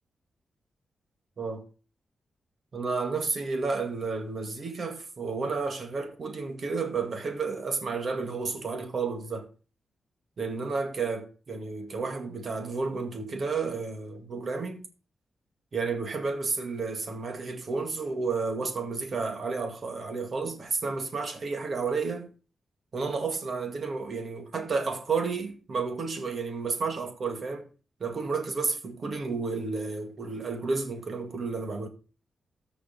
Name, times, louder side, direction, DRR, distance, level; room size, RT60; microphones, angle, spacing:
voice 1, 2.7-9.5 10.4-14.9 15.7-22.3 22.9-27.7 28.0-31.9, right 4 dB, 45° right, 1.9 m, -31 dB
14.0 x 5.3 x 5.2 m
wide cardioid pair, 135°, 0 cm